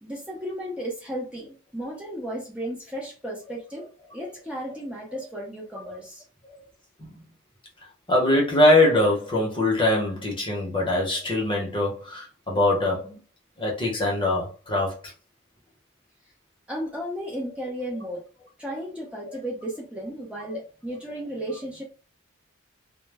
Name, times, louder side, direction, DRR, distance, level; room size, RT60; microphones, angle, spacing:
voice 1, 0.0-3.8 4.1-6.2 16.7-18.2 18.6-21.8, right 1 dB, 5° right, 0.6 m, -34 dB
voice 2, 8.1-13.2 13.6-14.9 19.3-19.4, left 1 dB, 25° left, 0.8 m, -22 dB
2.1 x 2.0 x 3.3 m
head